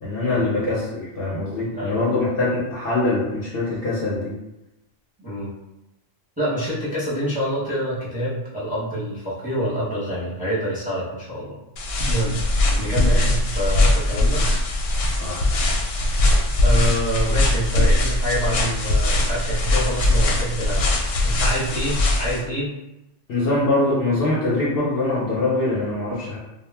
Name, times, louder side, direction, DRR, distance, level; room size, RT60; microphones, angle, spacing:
voice 1, 0.0-4.4 15.2-15.4 23.3-26.4, left 2 dB, 55° left, -6 dB, 0.8 m, -23 dB
voice 2, 5.2-5.5 6.4-11.6 11.8-12.4 12.8-14.4 16.6-20.9 21.2-22.8, equal, 10° right, -9 dB, 0.7 m, -26 dB
sound 1, 11.8-22.4, left 1 dB, 85° left, 0.9 m, -20 dB
2.3 x 2.0 x 3.3 m, 0.92 s
omnidirectional pair, 1.3 m